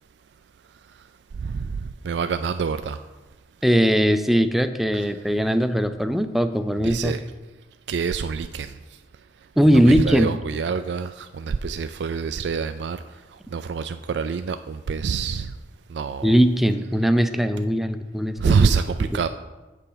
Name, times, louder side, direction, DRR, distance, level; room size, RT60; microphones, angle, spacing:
voice 1, 1.4-1.8 2.0-3.0 4.9-5.0 6.8-7.2 7.9-8.7 9.9-13.0 13.5-15.5 15.9-16.4 18.4-19.3, right 5 dB, 75° right, 9 dB, 0.4 m, -25 dB
voice 2, 3.6-7.1 9.6-10.3 16.2-18.7, equal, ahead, 9 dB, 0.5 m, -20 dB
8.2 x 6.7 x 5.6 m, 1.1 s
head